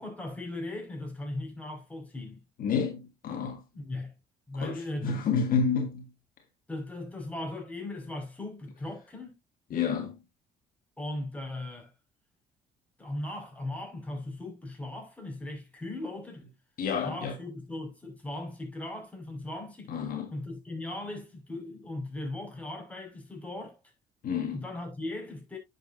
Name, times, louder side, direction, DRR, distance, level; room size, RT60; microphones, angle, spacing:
voice 1, 0.0-2.4 3.7-4.1 4.5-5.2 6.7-9.4 11.0-11.9 13.0-16.4 17.0-19.9 20.3-23.8 24.5-25.6, left 2 dB, 10° left, 5.3 m, -38 dB
voice 2, 2.6-3.6 4.6-6.1 9.7-10.2 16.8-17.4 19.9-20.3 24.2-24.6, left 6 dB, 55° left, 1.7 m, -29 dB
10.0 x 7.1 x 2.6 m
cardioid pair, 110°, 17 cm